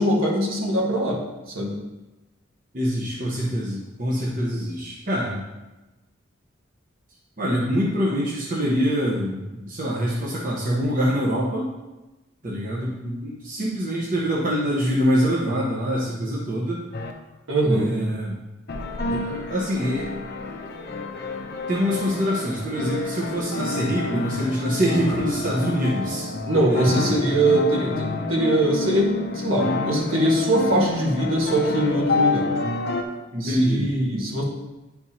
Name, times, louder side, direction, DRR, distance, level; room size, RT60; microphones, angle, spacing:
voice 1, 0.0-1.7 17.5-17.9 26.5-32.5 33.4-34.4, right 1 dB, 75° right, -2 dB, 1.5 m, -22 dB
voice 2, 2.7-5.4 7.4-11.7 12.4-16.8 17.6-18.4 19.1-20.1 21.7-26.3 26.7-27.1 33.3-33.9, equal, 40° right, -4 dB, 0.9 m, -25 dB
sound 1, 16.9-17.1 18.7-33.0, left 3 dB, 50° left, 0.6 m, -29 dB
10.0 x 4.6 x 2.8 m, 1.1 s
head